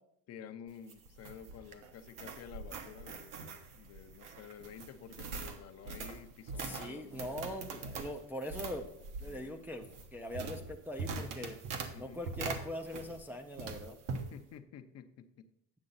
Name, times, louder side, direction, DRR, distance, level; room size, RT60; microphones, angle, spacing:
voice 1, 0.3-7.5 9.2-9.6 11.9-12.2 14.3-15.4, left 8 dB, 45° left, 9 dB, 0.6 m, -51 dB
sound 1, 0.7-13.3 13.6-14.3, right 4 dB, 60° right, 1.1 m, -43 dB
voice 2, 6.6-8.9 9.2-9.9 10.1-11.6 12.0-14.0, equal, 5° right, 1 dB, 0.4 m, -41 dB
8.8 x 6.7 x 4.0 m, 0.72 s
cardioid pair, 150°, 36 cm